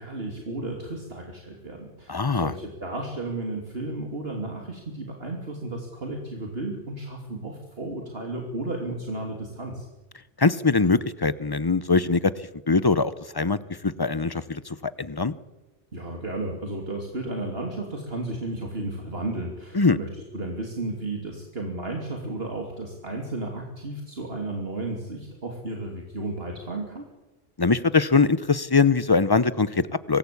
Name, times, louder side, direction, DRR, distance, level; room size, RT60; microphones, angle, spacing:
voice 1, 0.0-9.9 15.9-27.0, right 2 dB, 55° right, 1 dB, 3.1 m, -33 dB
voice 2, 2.1-2.5 10.4-12.3 12.7-13.6 13.8-15.3 19.7-20.0 27.6-30.2, left 4 dB, 25° left, 16 dB, 0.7 m, -22 dB
25.0 x 19.0 x 8.6 m, 1.1 s
omnidirectional pair, 1.2 m